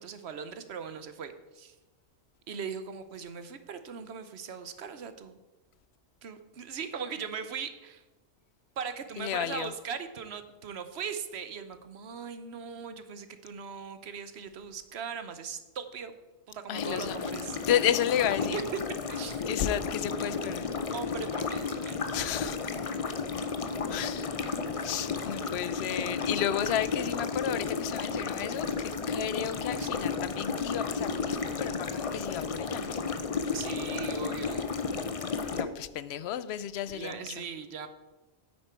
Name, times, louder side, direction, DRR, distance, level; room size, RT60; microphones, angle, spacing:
voice 1, 0.0-1.7 2.5-5.4 6.2-8.0 8.8-16.2 16.5-17.6 18.5-18.6 19.1-19.6 20.9-22.2 29.8-29.9 33.5-34.7 36.9-37.9, right 6 dB, 75° right, 1.1 m, -39 dB
voice 2, 9.2-9.7 16.7-17.3 17.7-18.6 19.5-20.7 22.1-22.7 23.9-24.3 24.8-33.0 35.5-37.4, left 10 dB, 75° left, 0.8 m, -32 dB
sound 1, 16.8-35.6, left 5 dB, 40° left, 0.6 m, -33 dB
9.6 x 8.6 x 4.5 m
omnidirectional pair, 1.1 m